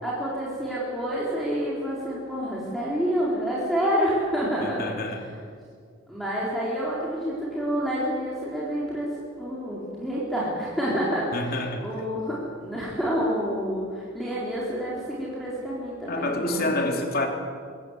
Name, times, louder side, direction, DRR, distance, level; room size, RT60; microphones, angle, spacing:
voice 1, 0.0-5.1 6.1-9.1 9.4-16.7, equal, ahead, -6 dB, 4.2 m, -28 dB
voice 2, 4.6-5.2 11.3-11.8 16.1-17.3, left 2 dB, 50° left, 3 dB, 3.1 m, -28 dB
25.0 x 17.5 x 8.2 m, 2.1 s
head